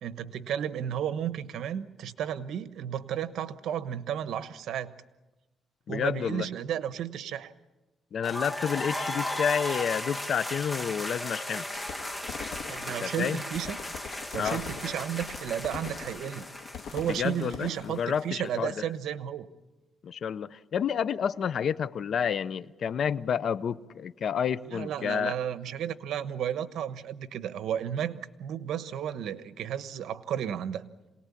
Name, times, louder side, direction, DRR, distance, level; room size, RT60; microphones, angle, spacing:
voice 1, 0.0-4.9 5.9-7.5 12.7-13.8 14.3-16.4 16.9-19.5 24.7-30.9, right 9 dB, 80° right, 1.1 m, -33 dB
voice 2, 5.9-6.5 8.1-11.6 13.0-13.4 14.3-14.6 17.1-18.7 20.0-25.3, left 7 dB, 60° left, 0.7 m, -30 dB
sound 1, 8.2-18.0, left 1 dB, 10° left, 2.1 m, -36 dB
sound 2, 11.7-18.0, left 7 dB, 75° left, 1.7 m, -43 dB
27.0 x 19.0 x 8.5 m
cardioid pair, 115°, 0 cm